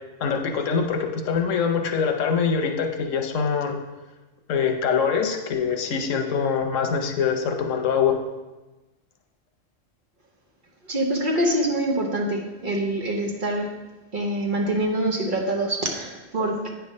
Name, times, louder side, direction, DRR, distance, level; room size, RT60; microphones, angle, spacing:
voice 1, 0.2-3.8 4.5-8.2, left 6 dB, 90° left, 4 dB, 1.1 m, -24 dB
voice 2, 10.9-13.7 14.1-16.7, right 1 dB, 45° right, 0 dB, 1.1 m, -25 dB
8.9 x 3.5 x 5.2 m, 1.1 s
omnidirectional pair, 1.3 m